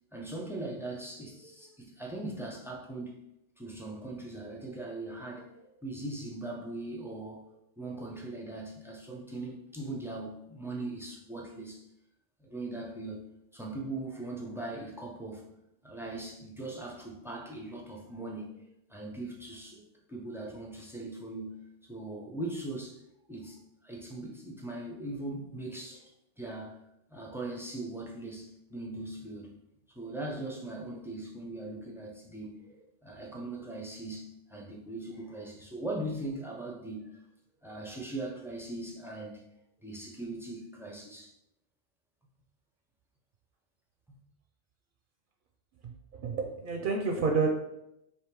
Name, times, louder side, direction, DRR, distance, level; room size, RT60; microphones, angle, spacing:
voice 1, 0.1-3.2 3.6-7.5 7.8-11.8 12.4-13.2 13.5-15.5 15.8-19.8 20.1-21.6 21.9-23.0 23.3-26.1 26.4-26.8 27.1-29.5 29.9-37.2 37.6-39.4 39.8-41.3 44.1-44.2, right 2 dB, 5° right, 0 dB, 0.4 m, -40 dB
voice 2, 45.8-47.6, right 4 dB, 60° right, 2 dB, 0.6 m, -29 dB
3.4 x 2.8 x 4.5 m, 0.83 s
omnidirectional pair, 1.1 m